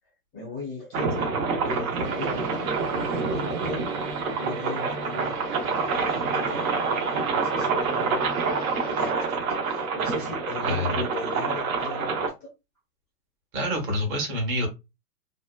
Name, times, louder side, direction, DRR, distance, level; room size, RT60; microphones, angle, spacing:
voice 1, 0.3-1.3 1.6-2.7 3.1-3.9 4.4-5.7 6.1-8.5 8.8-12.5, left 3 dB, 15° left, 0.5 m, -38 dB
sound 1, 0.9-12.3, right 4 dB, 60° right, 0.8 m, -27 dB
sound 2, 2.0-9.1, right 3 dB, 85° right, 1.0 m, -40 dB
voice 2, 10.6-11.0 13.5-14.7, left 1 dB, 35° right, 1.1 m, -27 dB
2.8 x 2.2 x 2.2 m
hypercardioid pair, 140°, 49 cm